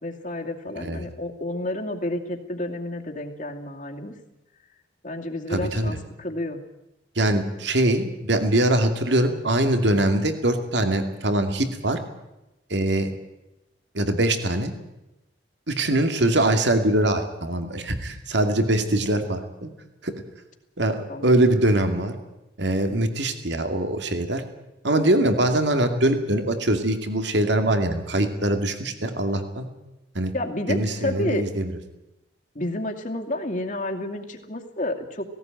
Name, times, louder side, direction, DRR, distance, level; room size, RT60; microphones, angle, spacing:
voice 1, 0.0-4.1 5.0-6.6 21.1-21.4 30.3-31.4 32.5-35.2, left 1 dB, 45° left, 3 dB, 2.5 m, -30 dB
voice 2, 0.8-1.1 5.5-5.9 7.2-12.0 12.7-13.1 13.9-14.7 15.7-19.7 20.0-20.1 20.8-22.1 22.6-24.4 24.8-29.7 30.1-30.3 30.7-31.8, right 1 dB, 65° right, 7 dB, 2.4 m, -23 dB
18.0 x 17.5 x 9.1 m, 0.95 s
head